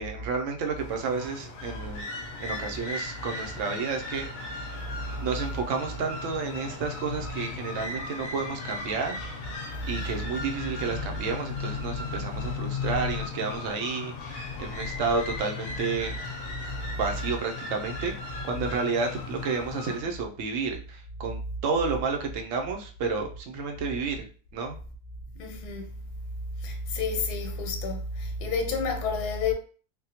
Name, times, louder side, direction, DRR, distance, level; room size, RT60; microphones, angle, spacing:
voice 1, 0.0-2.1 2.4-4.7 5.2-9.2 9.9-16.1 16.9-18.1 18.4-24.3 24.5-24.8, right 4 dB, 65° right, 0.8 m, -31 dB
sound 1, 0.8-20.0, left 4 dB, 65° left, 1.1 m, -36 dB
voice 2, 25.4-25.9 26.6-29.5, left 4 dB, 90° left, 1.2 m, -30 dB
3.4 x 2.1 x 2.8 m
omnidirectional pair, 1.7 m